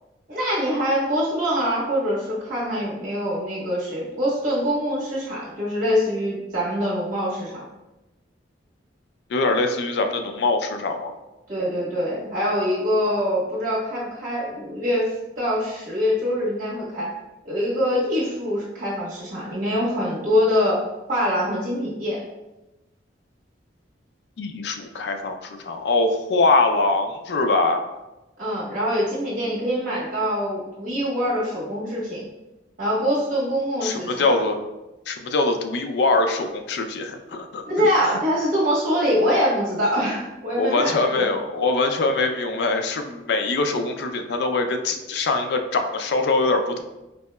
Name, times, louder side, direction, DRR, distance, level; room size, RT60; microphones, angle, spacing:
voice 1, 0.3-7.7 11.5-17.1 17.4-22.2 28.4-32.3 32.8-34.3 37.7-41.3, equal, 45° right, -7 dB, 1.4 m, -24 dB
voice 2, 9.3-11.1 24.4-27.8 33.8-34.6 35.1-37.9 40.6-46.8, left 3 dB, 60° left, 5 dB, 0.3 m, -23 dB
4.1 x 2.7 x 2.2 m, 1.0 s
head